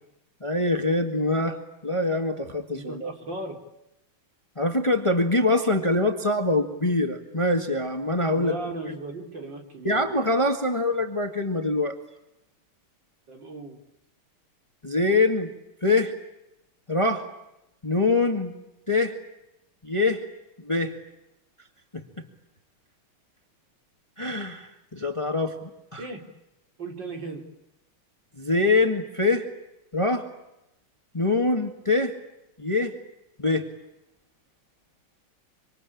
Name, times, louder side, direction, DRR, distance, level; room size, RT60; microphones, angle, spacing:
voice 1, 0.4-3.1 4.6-8.6 8.8-8.9 9.8-12.0 14.8-15.5 15.8-16.1 16.9-17.3 17.8-18.5 18.9-19.1 19.8-20.2 20.6-20.9 21.9-22.0 24.2-26.1 28.4-29.5 29.9-30.3 31.1-32.1 32.6-32.9 33.4-33.7, left 2 dB, 15° left, 5 dB, 1.8 m, -24 dB
voice 2, 2.7-3.6 8.3-10.0 13.3-13.8 26.0-26.2 26.8-27.4, right 2 dB, 55° right, 3 dB, 4.5 m, -36 dB
26.5 x 26.0 x 8.7 m, 0.89 s
omnidirectional pair, 2.4 m